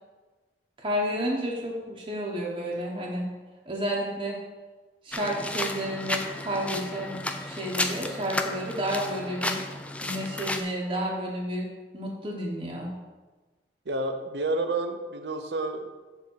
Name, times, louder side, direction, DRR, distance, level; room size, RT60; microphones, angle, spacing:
voice 1, 0.8-3.3 3.7-4.4 5.0-9.6 10.0-11.7 11.9-12.9, equal, 30° right, -3 dB, 1.0 m, -31 dB
sound 1, 5.1-10.6, left 2 dB, 5° left, 0.4 m, -33 dB
voice 2, 13.9-15.9, right 2 dB, 70° right, 6 dB, 0.7 m, -29 dB
7.0 x 3.6 x 6.3 m, 1.2 s
head